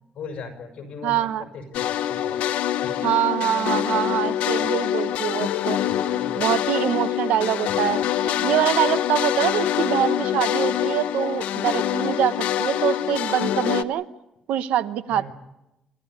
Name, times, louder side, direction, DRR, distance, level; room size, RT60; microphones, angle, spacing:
voice 1, 0.1-2.9 5.9-6.4 15.1-15.3, left 4 dB, 50° left, 4 dB, 5.8 m, -39 dB
voice 2, 1.0-1.4 3.0-5.8 6.0-14.1 14.5-15.3, right 11 dB, 85° right, 13 dB, 0.9 m, -24 dB
sound 1, 1.7-13.8, left 11 dB, 85° left, 0.8 m, -25 dB
28.0 x 14.0 x 9.6 m, 0.94 s
cardioid pair, 165°, 2 cm